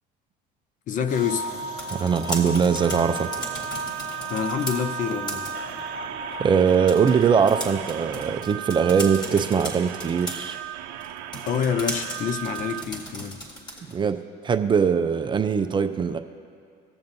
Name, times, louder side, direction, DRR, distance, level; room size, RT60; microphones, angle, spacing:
voice 1, 0.9-1.5 4.3-5.5 11.5-13.4, left 7 dB, 45° left, 10 dB, 0.6 m, -27 dB
sound 1, 1.1-7.8, equal, 75° left, 1.6 m, -36 dB
Typing pc, 1.6-14.0, equal, 20° left, 1.9 m, -38 dB
voice 2, 1.9-3.3 6.4-10.6 13.9-16.2, right 6 dB, 25° right, 8 dB, 0.5 m, -21 dB
sound 2, 2.8-12.8, right 13 dB, 75° right, 0.6 m, -36 dB
20.0 x 7.1 x 2.7 m, 2.3 s
supercardioid pair, 115°, 19 cm